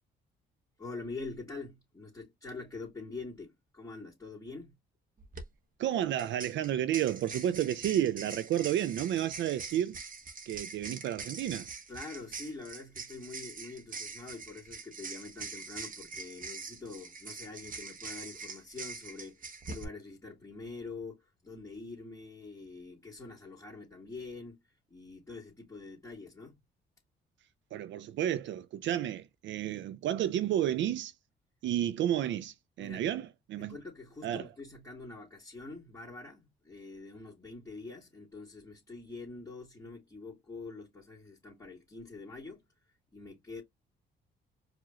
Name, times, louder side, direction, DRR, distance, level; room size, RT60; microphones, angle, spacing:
voice 1, 0.8-4.8 11.9-26.6 32.8-33.1 33.6-42.6 43.1-43.6, left 3 dB, 15° left, 2.5 m, -45 dB
sound 1, 5.2-5.4 6.2-19.8, right 4 dB, 45° right, 1.2 m, -44 dB
voice 2, 5.8-10.0 10.5-11.7 27.7-31.1 31.6-33.8 34.2-34.5, right 11 dB, 70° right, 0.4 m, -31 dB
4.8 x 2.9 x 2.4 m
cardioid pair, 90°, 20 cm